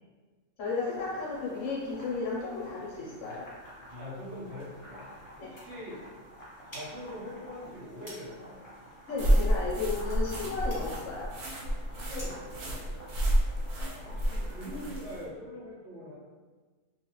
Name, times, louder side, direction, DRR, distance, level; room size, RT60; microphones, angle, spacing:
voice 1, 0.6-3.5 5.4-5.5 9.1-11.3, left 4 dB, 65° left, -5 dB, 0.9 m, -34 dB
sound 1, 0.7-14.9, equal, 40° left, 0.4 m, -50 dB
voice 2, 3.9-5.1 5.4-6.0 6.6-8.6 12.0-12.9 13.7-16.1, left 1 dB, 55° right, -8 dB, 0.9 m, -43 dB
sound 2, 6.7-12.5, equal, 10° left, 1.4 m, -51 dB
sound 3, 9.2-15.2, equal, 90° right, 1.2 m, -30 dB
2.5 x 2.4 x 2.9 m, 1.4 s
omnidirectional pair, 1.6 m